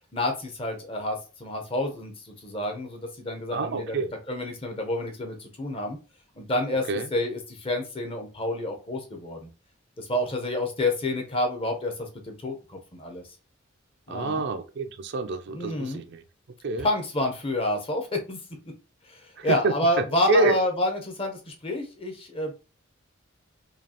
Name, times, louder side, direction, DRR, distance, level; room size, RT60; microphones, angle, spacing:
voice 1, 0.1-4.0 4.3-6.0 6.4-9.5 10.0-13.2 14.1-14.4 15.5-16.0 16.8-18.4 19.1-22.5, left 1 dB, 25° left, 0.8 m, -29 dB
voice 2, 3.5-4.1 6.9-7.1 14.1-16.2 16.6-16.9 19.4-19.7 20.3-20.6, right 3 dB, 55° right, 0.4 m, -26 dB
4.9 x 2.4 x 2.9 m
head